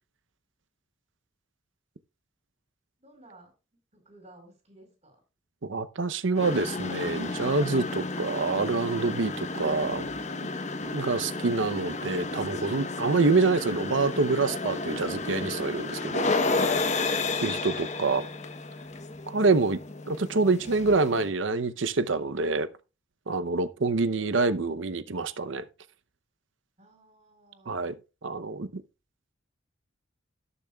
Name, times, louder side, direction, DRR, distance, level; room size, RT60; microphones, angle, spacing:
voice 1, 3.0-3.5 3.9-5.2 10.6-11.5 26.8-27.8, right 1 dB, 35° right, 4.9 m, -56 dB
voice 2, 5.6-10.1 10.9-16.9 17.4-18.2 19.3-19.8 20.1-22.7 23.3-25.6 27.7-28.0 28.2-28.8, right 3 dB, 65° right, 0.8 m, -26 dB
sound 1, 6.3-21.3, left 3 dB, 35° left, 1.0 m, -32 dB
18.0 x 7.0 x 2.3 m
head